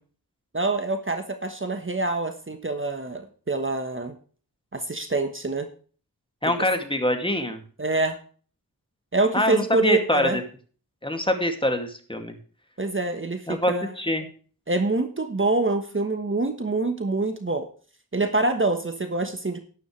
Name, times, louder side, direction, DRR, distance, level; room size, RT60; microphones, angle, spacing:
voice 1, 0.5-4.1 4.7-5.7 7.8-8.2 9.1-10.4 12.8-13.9 14.7-17.7 18.1-19.6, right 2 dB, 35° right, 7 dB, 1.3 m, -25 dB
voice 2, 6.4-7.6 9.3-10.4 11.0-12.4 13.5-14.3, left 1 dB, 15° left, 5 dB, 2.4 m, -24 dB
12.0 x 10.5 x 3.3 m, 0.41 s
wide cardioid pair, 70°, 36 cm